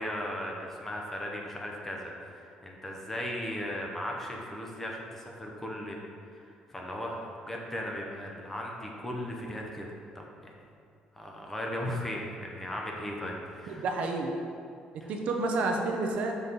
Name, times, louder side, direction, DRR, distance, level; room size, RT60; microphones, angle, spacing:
voice 1, 0.0-6.0 6.3-9.9 10.1-10.5 11.2-13.8 15.0-15.1, left 1 dB, 10° left, -1 dB, 0.7 m, -37 dB
voice 2, 13.7-14.3 14.9-16.3, right 3 dB, 55° right, 2 dB, 0.7 m, -30 dB
6.0 x 5.4 x 4.0 m, 2.4 s
cardioid pair, 175°, 3 cm